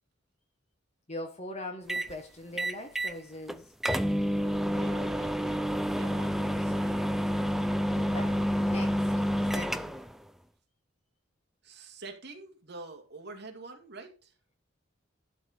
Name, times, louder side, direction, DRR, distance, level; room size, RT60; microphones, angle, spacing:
voice 1, 1.1-3.6 7.9-9.1 9.5-9.9, left 1 dB, 35° left, 1.2 m, -41 dB
sound 1, 1.9-2.1 2.6-3.2 3.5-3.6 3.8-10.1, equal, ahead, 0.3 m, -29 dB
voice 2, 4.2-7.1 11.6-14.3, right 3 dB, 55° right, 2.2 m, -47 dB
11.5 x 4.3 x 5.4 m
head